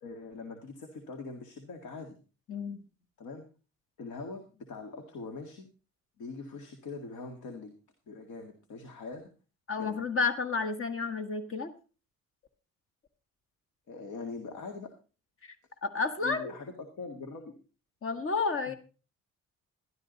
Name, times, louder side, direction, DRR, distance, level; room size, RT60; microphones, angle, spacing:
voice 1, 0.0-2.2 3.2-3.4 4.0-5.7 6.2-7.7 8.1-9.2 9.8-10.0 13.9-14.9 16.2-17.5, left 4 dB, 75° left, 4 dB, 2.0 m, -42 dB
voice 2, 2.5-2.8 9.7-11.7 15.4-15.5 15.8-16.5 18.0-18.7, left 4 dB, 45° left, 9 dB, 1.5 m, -31 dB
12.5 x 12.0 x 4.0 m, 0.35 s
cardioid pair, 90°, 30 cm